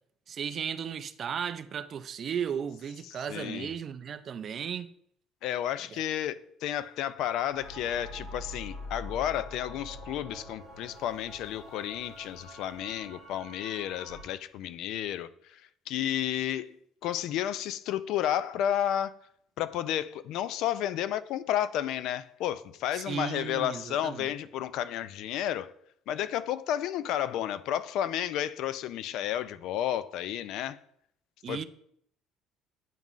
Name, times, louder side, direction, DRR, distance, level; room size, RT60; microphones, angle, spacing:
voice 1, 0.3-4.9 5.9-6.0 22.9-24.3 31.4-31.6, right 7 dB, 35° right, 0.3 m, -35 dB
voice 2, 3.1-3.7 5.4-6.4 6.6-15.6 15.9-16.8 17.0-19.1 19.6-25.7 26.1-30.8 31.5-31.6, left 11 dB, 60° left, 0.3 m, -32 dB
sound 1, 7.5-14.2, left 1 dB, 80° left, 2.6 m, -44 dB
9.0 x 5.4 x 2.5 m
cardioid pair, 165°, 0 cm